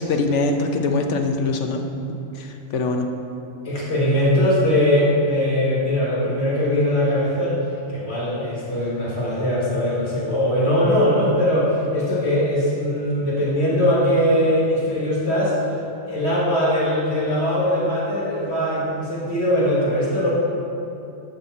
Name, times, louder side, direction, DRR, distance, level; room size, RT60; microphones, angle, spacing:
voice 1, 0.0-3.1, left 3 dB, 85° left, 4 dB, 1.2 m, -23 dB
voice 2, 3.6-7.6 7.9-15.6 16.1-20.3, left 1 dB, 65° left, -7 dB, 2.1 m, -21 dB
11.5 x 4.4 x 6.7 m, 2.7 s
omnidirectional pair, 1.2 m